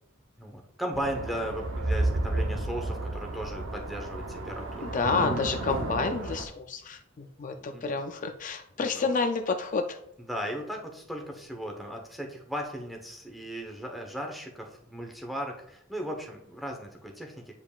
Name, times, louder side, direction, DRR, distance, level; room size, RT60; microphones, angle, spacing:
voice 1, 0.4-4.9 7.6-8.0 8.8-9.2 10.3-17.3, equal, ahead, 1 dB, 0.9 m, -37 dB
sound 1, 0.9-6.5, right 1 dB, 80° right, 0.8 m, -32 dB
voice 2, 4.8-10.0, left 4 dB, 40° left, 6 dB, 0.4 m, -29 dB
8.7 x 5.1 x 2.4 m, 0.73 s
head